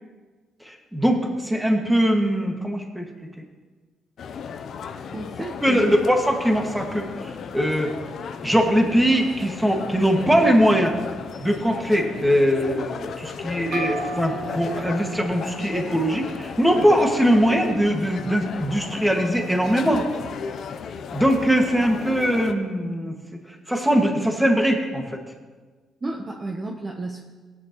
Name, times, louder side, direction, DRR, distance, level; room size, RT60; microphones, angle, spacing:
voice 1, 0.6-3.1 3.4-3.5 5.6-7.9 8.4-11.0 11.4-20.1 21.1-23.1 23.5-25.2, equal, 5° right, 2 dB, 1.9 m, -21 dB
sound 1, 4.2-22.5, left 6 dB, 65° left, 0.6 m, -35 dB
voice 2, 5.1-6.0 26.0-27.2, right 2 dB, 30° right, 2 dB, 0.9 m, -32 dB
sound 2, 13.7-17.3, right 3 dB, 85° right, 2.1 m, -36 dB
17.0 x 9.2 x 3.1 m, 1.4 s
cardioid pair, 90°, 0 cm